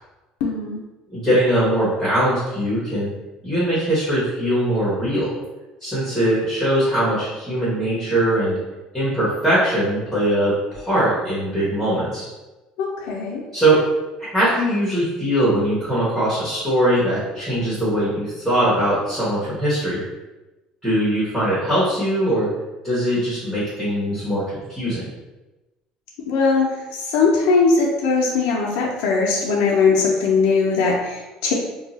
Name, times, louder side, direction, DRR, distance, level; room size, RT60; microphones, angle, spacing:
voice 1, 0.4-0.8 12.8-13.4 26.3-26.7 27.1-31.5, left 4 dB, 85° left, -2 dB, 0.5 m, -19 dB
voice 2, 1.1-3.1 3.4-5.3 5.8-8.5 8.9-12.3 13.5-13.8 14.3-20.0 20.8-22.5 22.8-25.1, right 1 dB, 5° right, -9 dB, 1.1 m, -21 dB
2.7 x 2.3 x 3.9 m, 1.1 s
cardioid pair, 155°, 2 cm